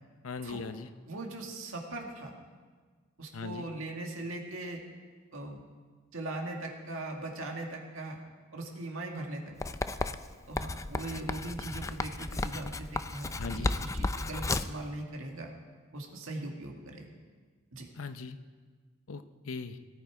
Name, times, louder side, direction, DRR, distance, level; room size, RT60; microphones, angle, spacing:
voice 1, 0.2-0.9 3.3-3.7 13.4-13.7 18.0-18.4 19.1-19.8, left 4 dB, 85° left, 10 dB, 0.7 m, -39 dB
voice 2, 1.1-2.3 3.2-4.8 5.3-5.6 6.1-8.2 8.5-9.4 9.7-9.8 10.5-15.5 15.9-17.1 17.7-17.9, right 2 dB, 75° right, 1 dB, 2.0 m, -40 dB
Writing, 9.6-14.8, left 2 dB, 15° left, 0.4 m, -33 dB
17.5 x 12.0 x 4.8 m, 1.5 s
head